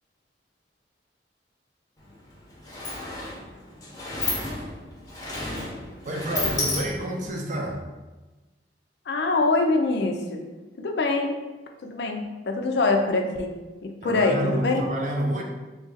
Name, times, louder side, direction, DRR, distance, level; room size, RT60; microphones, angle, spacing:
Sliding door, 2.0-2.1 2.4-7.3, left 2 dB, 20° left, 0.7 m, -32 dB
voice 1, 6.0-7.8 14.0-15.4, right 1 dB, 45° right, 1 dB, 0.6 m, -29 dB
voice 2, 9.1-10.4 10.8-11.4 11.8-13.5 13.8-14.8, left 3 dB, 70° left, 3 dB, 0.5 m, -24 dB
3.2 x 2.5 x 3.9 m, 1.2 s
head